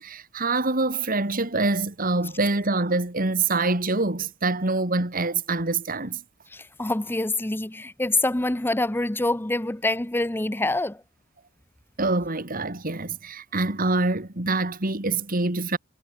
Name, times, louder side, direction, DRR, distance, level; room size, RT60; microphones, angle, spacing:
voice 1, 0.0-6.2 12.0-15.8, right 3 dB, 45° right, 2.7 m, -25 dB
voice 2, 6.5-11.0, left 2 dB, 10° left, 0.7 m, -26 dB
head